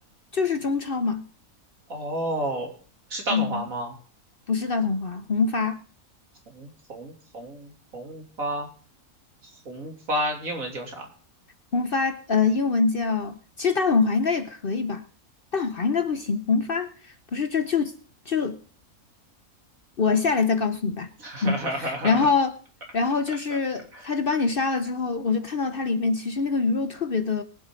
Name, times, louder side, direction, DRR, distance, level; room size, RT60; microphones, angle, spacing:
voice 1, 0.3-1.3 3.3-3.6 4.5-5.8 11.7-15.0 15.5-17.9 18.3-18.6 20.0-21.1 21.4-22.6 22.9-27.4, left 4 dB, 45° left, 0.9 m, -24 dB
voice 2, 1.9-2.7 3.1-4.0 6.5-8.7 9.7-11.1 21.2-22.3, right 1 dB, 70° right, 3.4 m, -31 dB
22.5 x 7.8 x 3.8 m
omnidirectional pair, 1.5 m